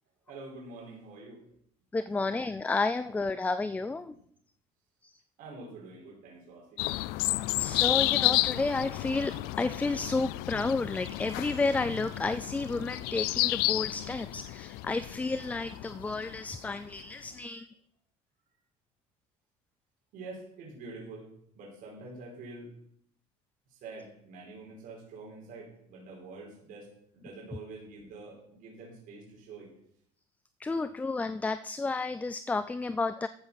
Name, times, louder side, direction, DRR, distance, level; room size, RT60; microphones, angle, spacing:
voice 1, 0.3-1.4 2.2-2.3 4.1-4.2 5.4-6.9 20.1-21.3 21.5-22.7 23.7-29.7, right 3 dB, 65° right, -3 dB, 5.2 m, -46 dB
voice 2, 1.9-4.2 5.0-5.1 7.6-17.7 30.6-33.3, left 3 dB, 10° left, 13 dB, 0.4 m, -31 dB
sound 1, 6.8-17.0, left 19 dB, 85° left, 0.5 m, -31 dB
14.0 x 8.0 x 5.8 m, 0.70 s
cardioid pair, 125°, 15 cm